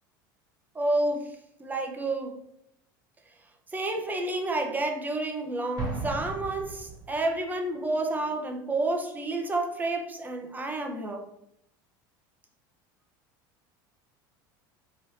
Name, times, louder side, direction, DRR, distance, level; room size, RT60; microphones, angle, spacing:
voice 1, 0.7-2.4 3.7-11.2, right 2 dB, 15° right, 3 dB, 0.6 m, -30 dB
Explosion, 5.8-7.4, right 3 dB, 35° right, 1.2 m, -36 dB
3.0 x 2.6 x 3.1 m, 0.78 s
hypercardioid pair, 90°, 11 cm